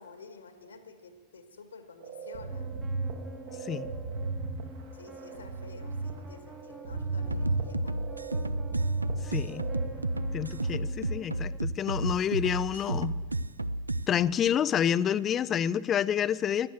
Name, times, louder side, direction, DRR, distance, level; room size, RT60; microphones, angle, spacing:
voice 1, 0.0-2.7 3.5-3.8 4.9-8.0 8.3-8.4, left 4 dB, 75° left, 7 dB, 1.7 m, -50 dB
sound 1, 2.0-10.6, right 3 dB, 55° right, 1.6 m, -35 dB
sound 2, 2.5-11.6, right 2 dB, ahead, 0.8 m, -49 dB
sound 3, 7.3-14.1, right 2 dB, 80° right, 0.5 m, -32 dB
voice 2, 9.3-9.6 10.3-13.1 14.1-16.7, left 9 dB, 25° left, 19 dB, 0.5 m, -28 dB
16.5 x 11.5 x 7.0 m, 1.4 s
figure-of-eight pair, 90°, 0 cm